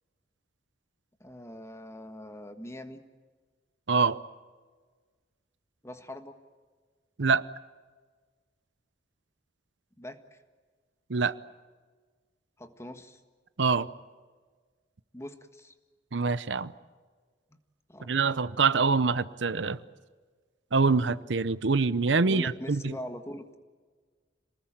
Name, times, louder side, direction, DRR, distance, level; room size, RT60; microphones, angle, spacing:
voice 1, 1.2-3.0 5.8-6.4 10.0-10.4 12.6-13.2 15.1-15.7 17.9-18.1 22.2-23.6, left 1 dB, 15° left, 8 dB, 1.6 m, -42 dB
voice 2, 3.9-4.2 7.2-7.4 11.1-11.3 13.6-13.9 16.1-16.7 18.1-19.8 20.7-22.9, right 4 dB, 75° right, 16 dB, 0.7 m, -25 dB
27.5 x 20.0 x 8.9 m, 1.5 s
head